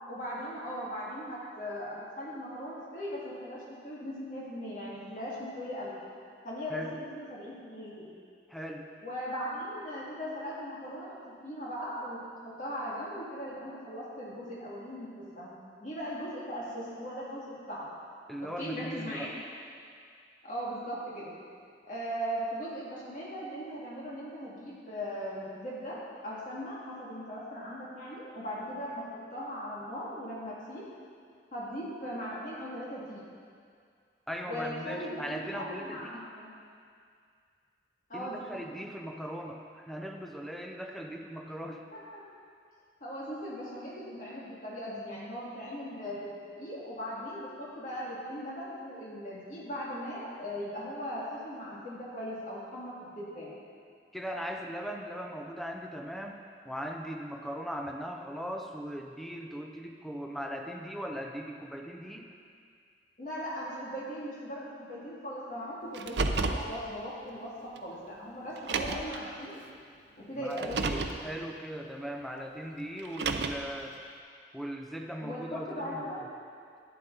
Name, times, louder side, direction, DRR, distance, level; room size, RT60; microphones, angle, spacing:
voice 1, 0.1-5.9 6.4-8.1 9.0-15.5 15.8-17.9 18.4-19.3 20.4-21.3 21.8-30.9 31.5-33.3 34.4-36.6 38.1-38.6 41.9-42.2 43.0-53.6 63.2-69.6 70.2-71.1 75.2-76.3, equal, 45° left, -6 dB, 2.3 m, -39 dB
voice 2, 8.5-8.9 18.3-19.3 34.3-36.2 38.1-41.8 54.1-62.3 70.4-74.0 74.5-76.1, equal, ahead, 2 dB, 0.6 m, -39 dB
Car, 65.9-66.7 67.8-67.9 68.6-69.2 70.5-71.2 73.0-73.7, right 3 dB, 75° right, 0.6 m, -31 dB
11.5 x 9.2 x 3.9 m, 2.2 s
head